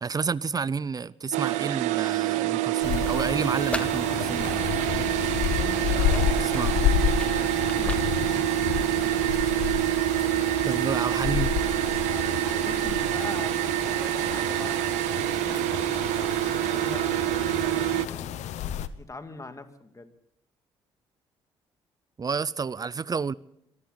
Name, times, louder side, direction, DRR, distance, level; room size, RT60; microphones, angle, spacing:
voice 1, 0.0-4.7 6.5-6.8 10.7-11.5 22.2-23.3, right 5 dB, 30° right, 0.6 m, -30 dB
sound 1, 1.3-18.1, right 17 dB, 75° right, 0.6 m, -26 dB
sound 2, 2.8-18.9, left 9 dB, 70° left, 0.8 m, -31 dB
sound 3, 3.4-9.5, left 1 dB, 10° left, 1.7 m, -41 dB
voice 2, 5.6-8.0 12.0-20.1, left 3 dB, 25° left, 2.3 m, -43 dB
23.0 x 15.0 x 4.0 m
hypercardioid pair, 50°, 12 cm